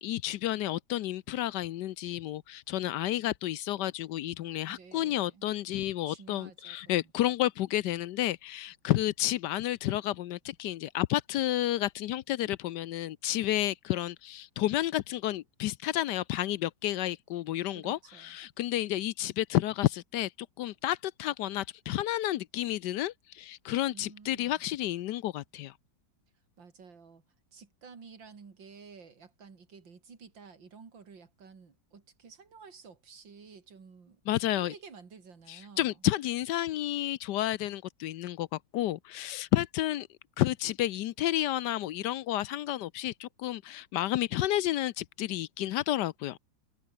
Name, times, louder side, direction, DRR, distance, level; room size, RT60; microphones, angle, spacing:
voice 1, 0.0-20.3 20.6-25.7 34.3-34.7 35.5-40.1 40.4-46.4, left 14 dB, 70° left, 1.2 m, -31 dB
voice 2, 4.7-5.5 6.0-7.3 17.7-18.4 23.9-24.6 26.6-27.2 27.5-34.2 34.5-36.0, right 5 dB, 80° right, 3.6 m, -52 dB
omnidirectional pair, 2.0 m